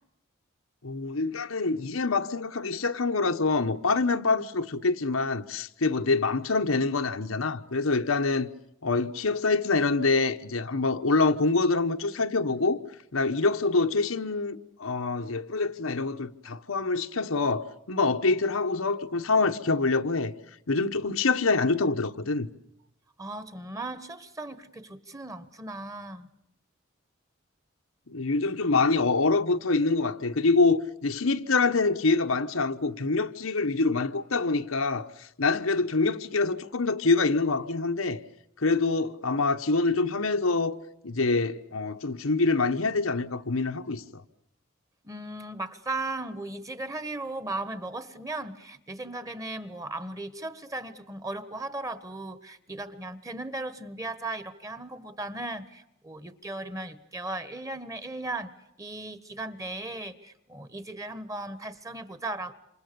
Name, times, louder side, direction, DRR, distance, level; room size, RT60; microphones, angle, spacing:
voice 1, 0.8-8.5 8.8-12.8 13.1-20.3 20.7-22.5 28.1-38.2 38.6-40.8 41.0-44.0, left 3 dB, 90° left, 1.3 m, -25 dB
voice 2, 23.2-26.3 45.0-58.5 58.8-62.5, right 2 dB, 15° right, 1.4 m, -37 dB
28.0 x 27.5 x 7.0 m
head